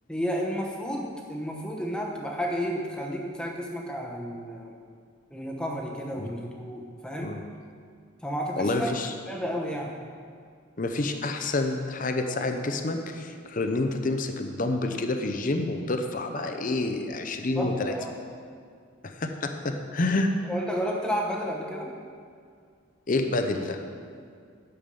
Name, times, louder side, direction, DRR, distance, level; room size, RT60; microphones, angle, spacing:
voice 1, 0.1-4.7 5.3-7.4 8.2-8.9 9.3-10.0 17.5-18.1 20.5-21.9, equal, 5° left, -1 dB, 1.0 m, -32 dB
voice 2, 8.6-9.1 10.8-17.9 19.2-20.3 23.1-23.8, left 2 dB, 40° left, 6 dB, 0.7 m, -28 dB
10.5 x 7.2 x 5.3 m, 2.2 s
head